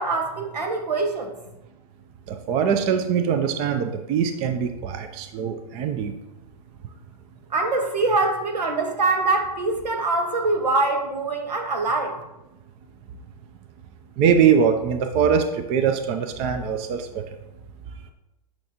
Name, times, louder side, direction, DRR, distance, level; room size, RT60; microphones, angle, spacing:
voice 1, 0.0-1.3 7.5-12.2, right 3 dB, 80° right, 4 dB, 1.4 m, -24 dB
voice 2, 2.3-6.1 14.2-17.4, right 7 dB, 30° right, 7 dB, 0.5 m, -22 dB
8.8 x 5.7 x 2.9 m, 0.97 s
hypercardioid pair, 135°, 21 cm